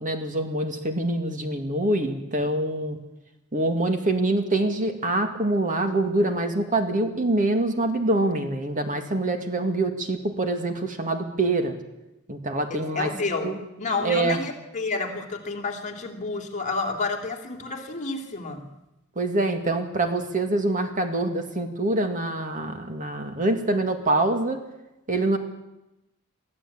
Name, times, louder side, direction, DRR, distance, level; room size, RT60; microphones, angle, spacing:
voice 1, 0.0-3.0 3.5-11.7 12.3-13.1 13.4-13.6 14.0-14.4 19.2-24.6 25.1-25.4, right 2 dB, 40° right, 6 dB, 2.2 m, -25 dB
voice 2, 12.7-13.5 13.8-18.7, left 3 dB, 35° left, 3 dB, 2.8 m, -30 dB
23.5 x 15.0 x 8.7 m, 0.93 s
head